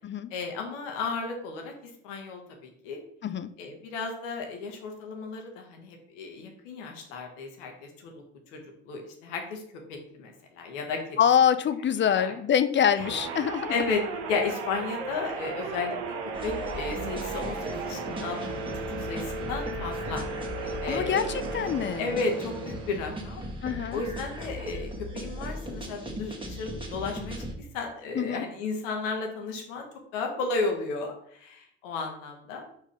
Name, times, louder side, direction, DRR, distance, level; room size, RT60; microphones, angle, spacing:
voice 1, 0.3-3.0 3.6-8.2 8.5-8.6 8.8-9.6 9.9-11.2 12.1-12.3 12.9-13.1 13.7-14.0 14.3-16.1 16.4-20.2 20.8-21.3 22.0-23.4 23.9-29.9 30.1-32.7, left 4 dB, 75° left, 3 dB, 1.3 m, -34 dB
voice 2, 11.2-13.7 20.7-22.0 23.6-24.0 28.2-28.5, left 8 dB, 30° left, 13 dB, 0.5 m, -25 dB
sound 1, 13.0-23.4, right 4 dB, 70° right, 1.1 m, -36 dB
sound 2, 16.3-27.5, equal, 15° right, 1.8 m, -38 dB
4.7 x 4.4 x 4.9 m, 0.66 s
hypercardioid pair, 60°, 37 cm